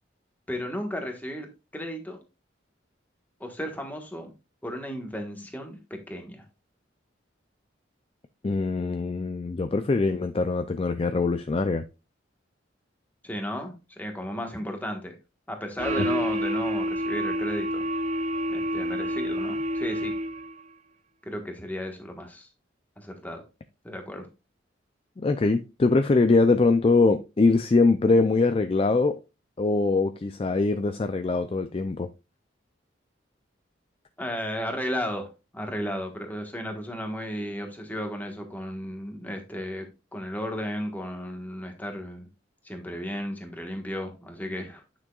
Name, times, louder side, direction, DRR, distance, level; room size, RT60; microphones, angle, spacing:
voice 1, 0.5-1.5 1.7-2.2 3.4-4.3 4.6-6.4 13.2-15.1 15.5-17.8 18.5-20.1 21.3-22.5 23.0-23.4 23.8-24.3 34.2-39.9 40.1-42.2 42.6-44.8, equal, 10° left, 1.3 m, -34 dB
voice 2, 8.4-11.8 25.2-29.2 29.6-32.1, left 3 dB, 30° left, 0.4 m, -23 dB
sound 1, 15.8-20.6, equal, 35° right, 0.5 m, -28 dB
9.2 x 6.1 x 2.4 m
head